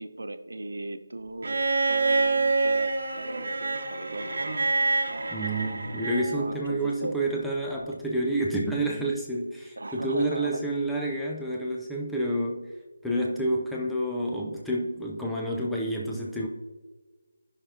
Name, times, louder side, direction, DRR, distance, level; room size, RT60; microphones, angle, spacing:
voice 1, 0.0-1.6 1.9-2.9 3.2-4.6 6.3-7.2 9.8-10.6, right 2 dB, 80° right, 10 dB, 0.8 m, -37 dB
Bowed string instrument, 1.4-6.5 7.9-8.0, right 3 dB, 55° right, 1.1 m, -27 dB
voice 2, 5.3-12.7 13.0-16.5, right 1 dB, ahead, -4 dB, 0.5 m, -29 dB
13.5 x 5.8 x 2.8 m, 1.3 s
figure-of-eight pair, 170°, 0 cm